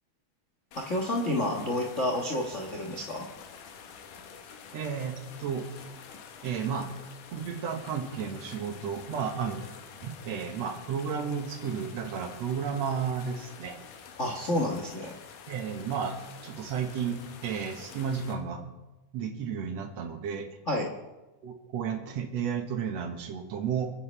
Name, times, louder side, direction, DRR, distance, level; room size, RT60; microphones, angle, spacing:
sound 1, 0.7-18.3, left 6 dB, 75° left, 2.7 m, -48 dB
voice 1, 0.7-3.3 14.2-15.1 20.7-20.9, left 1 dB, 40° left, 0 dB, 1.0 m, -29 dB
voice 2, 4.7-5.7 6.4-6.9 7.3-9.7 10.0-13.8 15.5-16.2 16.4-18.7 19.1-20.5 21.4-23.9, right 7 dB, 60° right, 5 dB, 2.3 m, -33 dB
28.0 x 9.5 x 3.4 m, 1.1 s
omnidirectional pair, 3.7 m